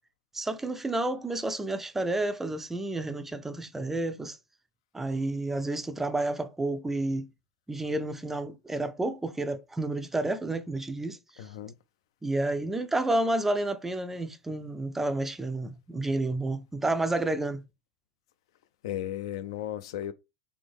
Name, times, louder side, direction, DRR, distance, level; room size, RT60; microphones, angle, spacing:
voice 1, 0.3-4.4 4.9-7.3 7.7-11.5 12.2-17.6, right 2 dB, 10° right, 0.4 m, -30 dB
voice 2, 11.4-11.7 18.8-20.1, left 12 dB, 60° left, 0.4 m, -35 dB
3.4 x 3.2 x 3.4 m
figure-of-eight pair, 90°, 3 cm